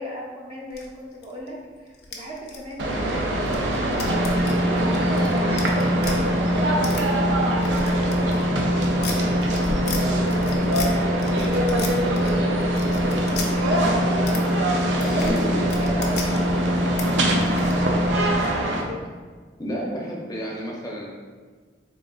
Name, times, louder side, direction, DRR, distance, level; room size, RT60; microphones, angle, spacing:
voice 1, 0.0-6.8 7.4-14.6 14.9-19.0, left 1 dB, 30° right, -4 dB, 0.6 m, -38 dB
sound 1, 0.7-1.5 1.9-6.1 6.8-7.0 7.5-10.0 10.3-10.9 11.2-12.3 12.6-13.5 14.2-14.4 14.6-16.4 17.0-17.1 17.3-17.7, left 3 dB, 65° left, 0.6 m, -34 dB
sound 2, 2.8-18.8, right 1 dB, 85° right, 0.5 m, -25 dB
sound 3, 4.0-18.3, left 1 dB, 60° right, 1.1 m, -25 dB
voice 2, 15.0-15.7 19.6-21.1, equal, 20° left, -3 dB, 0.6 m, -30 dB
3.8 x 3.6 x 2.4 m, 1.5 s
head